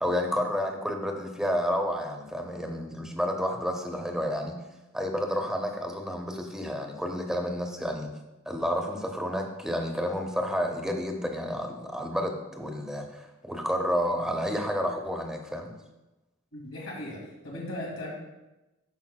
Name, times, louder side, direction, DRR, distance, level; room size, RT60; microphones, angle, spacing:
voice 1, 0.0-4.6 4.9-8.1 8.5-15.7, equal, 5° right, 3 dB, 0.7 m, -30 dB
voice 2, 16.5-18.1, left 1 dB, 80° left, -4 dB, 2.3 m, -37 dB
12.0 x 5.2 x 2.3 m, 1.0 s
head